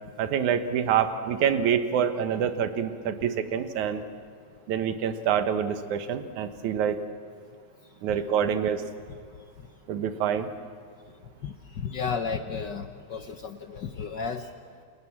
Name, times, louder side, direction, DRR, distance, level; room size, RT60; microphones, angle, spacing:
voice 1, 0.2-4.0 4.7-7.0 8.0-8.8 9.9-10.5, right 8 dB, 80° right, 9 dB, 2.7 m, -26 dB
voice 2, 11.8-14.5, left 5 dB, 70° left, 7 dB, 1.0 m, -33 dB
29.5 x 27.0 x 7.4 m, 2.1 s
omnidirectional pair, 3.4 m